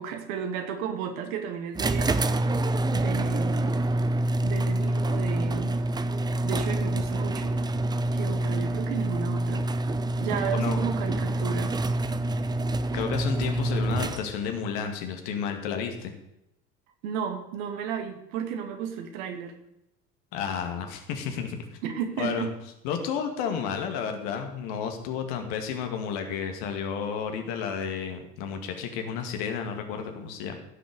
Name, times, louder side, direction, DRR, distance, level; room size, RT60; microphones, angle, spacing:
voice 1, 0.0-2.5 2.9-3.8 4.4-5.8 6.4-7.6 8.1-9.6 10.2-11.8 17.0-19.5 21.8-22.5, right 7 dB, 55° right, 5 dB, 2.3 m, -33 dB
sound 1, 1.7-14.5, right 1 dB, 10° right, 0.5 m, -27 dB
voice 2, 10.5-10.9 12.9-16.1 20.3-21.6 22.2-22.5 22.8-30.5, left 7 dB, 55° left, 5 dB, 2.4 m, -31 dB
15.5 x 7.2 x 6.8 m, 0.84 s
figure-of-eight pair, 65°, 47 cm